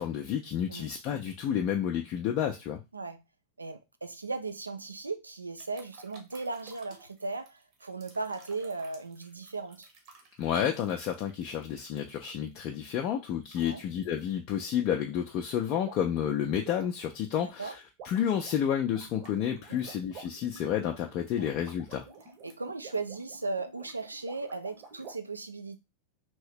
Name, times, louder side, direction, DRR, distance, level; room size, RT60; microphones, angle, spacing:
voice 1, 0.0-2.8 10.4-17.8 18.0-22.0, left 9 dB, 40° left, 0.5 m, -30 dB
voice 2, 3.6-9.9 13.6-13.8 17.4-17.7 19.7-19.9 21.4-21.5 22.4-25.8, right 3 dB, 80° right, 0.4 m, -37 dB
sound 1, 5.6-12.6 13.4-13.7 14.0-14.2 15.8-16.2 16.5-25.1, right 4 dB, 40° right, 1.0 m, -52 dB
3.0 x 2.7 x 3.3 m
figure-of-eight pair, 90°, 0 cm